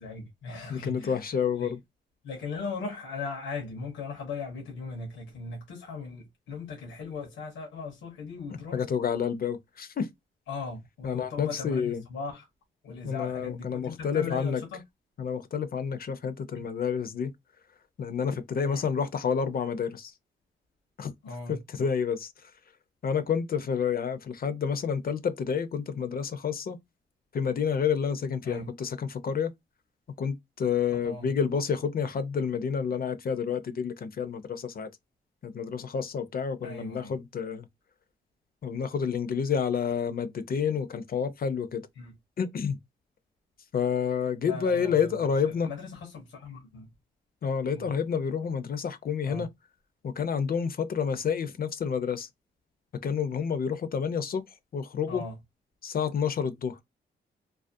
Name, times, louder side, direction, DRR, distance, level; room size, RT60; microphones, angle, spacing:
voice 1, 0.0-1.7 2.2-8.8 10.5-12.5 12.8-14.8 16.5-16.6 18.7-18.9 21.2-21.6 28.4-28.7 31.0-31.3 36.6-37.2 42.0-42.2 44.4-46.9 47.7-47.9 49.2-49.5 55.1-55.4, left 4 dB, 90° left, 0.7 m, -38 dB
voice 2, 0.7-1.8 8.7-10.1 11.0-12.0 13.0-14.6 15.2-17.3 18.0-20.1 21.0-21.1 21.5-22.3 23.0-26.8 27.3-29.5 30.2-34.9 35.4-37.7 38.6-41.8 42.4-42.8 43.7-45.7 47.4-49.5 50.0-52.3 53.0-54.4 54.7-55.2 55.8-56.8, left 7 dB, 50° left, 0.5 m, -29 dB
2.4 x 2.1 x 2.5 m
cardioid pair, 60°, 19 cm